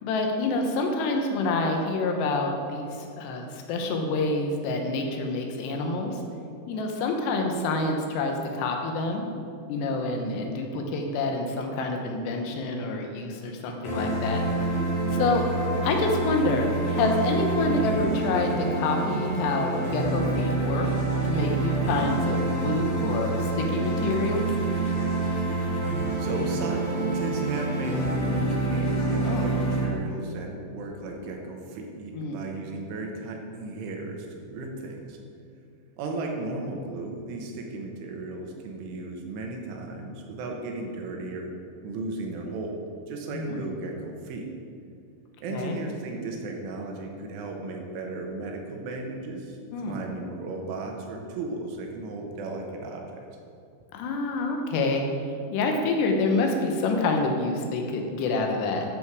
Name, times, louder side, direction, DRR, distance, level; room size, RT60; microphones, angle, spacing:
voice 1, 0.0-6.2 6.7-9.3 9.7-14.4 14.7-14.8 15.1-15.4 15.8-20.9 21.3-24.5 29.2-29.4 32.1-32.3 43.3-43.7 45.5-45.8 49.7-50.0 53.9-55.0 55.5-58.8, left 3 dB, 75° left, 2 dB, 2.8 m, -27 dB
sound 1, 13.8-29.8, right 2 dB, 55° left, 1.5 m, -27 dB
voice 2, 26.2-26.9 27.1-35.2 36.0-41.5 41.8-42.8 43.1-44.5 45.4-49.6 49.9-53.2, right 2 dB, 85° right, 1 dB, 3.6 m, -35 dB
12.5 x 7.0 x 4.7 m, 2.4 s
omnidirectional pair, 5.6 m